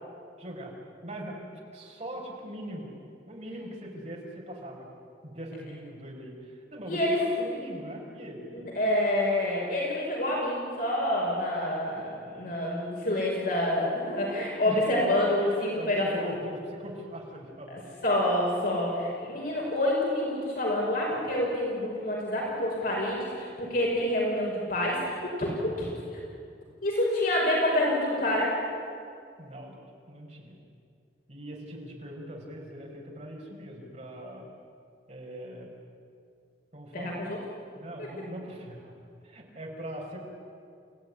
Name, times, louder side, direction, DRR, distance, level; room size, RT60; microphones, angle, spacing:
voice 1, 0.4-0.7 1.0-2.9 3.3-4.9 5.2-8.5 14.6-14.8 15.4-17.8 29.4-29.8 30.1-30.6 31.3-34.5 35.1-35.8 36.7-37.2 37.7-38.9 39.2-40.2, equal, 40° right, -1 dB, 5.6 m, -41 dB
voice 2, 6.9-7.2 8.8-16.2 17.7-26.2 26.8-28.5 36.9-37.4 38.0-38.1, left 1 dB, 55° left, -3 dB, 5.7 m, -27 dB
29.0 x 16.5 x 9.9 m, 2.4 s
head